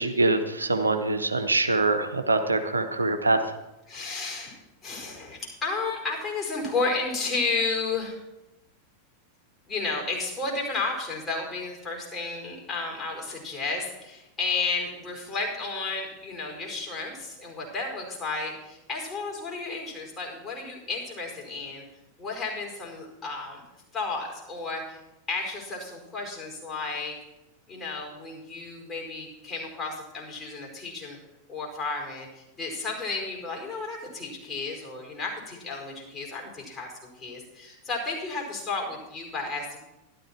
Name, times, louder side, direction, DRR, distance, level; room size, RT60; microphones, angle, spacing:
voice 1, 0.0-3.6, right 2 dB, 80° right, 7 dB, 0.9 m, -24 dB
voice 2, 3.9-4.6 4.8-8.2 9.7-21.8 22.2-23.6 23.9-25.0 25.3-27.1 27.7-31.2 31.5-39.8, left 3 dB, 25° left, -1 dB, 4.8 m, -32 dB
12.5 x 12.0 x 4.5 m, 0.94 s
figure-of-eight pair, 90°, 0 cm